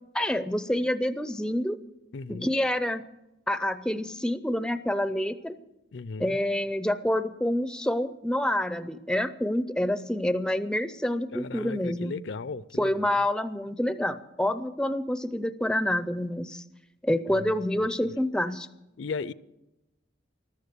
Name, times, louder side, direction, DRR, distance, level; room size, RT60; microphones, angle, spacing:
voice 1, 0.1-1.8 2.3-3.0 3.5-5.5 6.2-12.2 12.8-16.6 17.0-18.7, left 1 dB, 5° left, 12 dB, 0.4 m, -27 dB
voice 2, 2.1-2.5 5.9-6.4 11.3-13.1 17.3-18.1 19.0-19.3, left 4 dB, 70° left, 18 dB, 0.5 m, -37 dB
13.5 x 12.5 x 6.7 m, 0.95 s
head